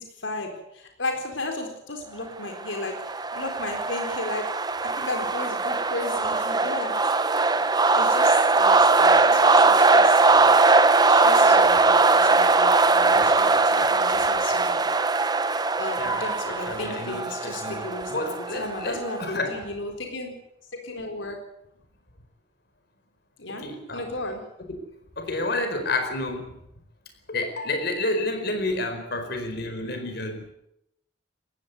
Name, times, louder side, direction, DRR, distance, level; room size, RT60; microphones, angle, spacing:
voice 1, 0.0-2.9 3.3-4.5 5.0-7.0 7.9-10.5 11.1-14.8 15.8-18.1 18.5-20.3 20.7-21.4 23.4-23.6 23.9-24.4 29.2-29.3, left 2 dB, 85° left, 3 dB, 4.1 m, -34 dB
sound 1, 2.6-19.2, right 3 dB, 20° right, 0.9 m, -20 dB
voice 2, 6.8-7.1 16.0-19.6 23.5-24.0 24.7-24.8 25.2-26.6 27.3-30.5, left 2 dB, 55° left, 7 dB, 4.5 m, -30 dB
19.5 x 16.0 x 9.5 m, 0.81 s
head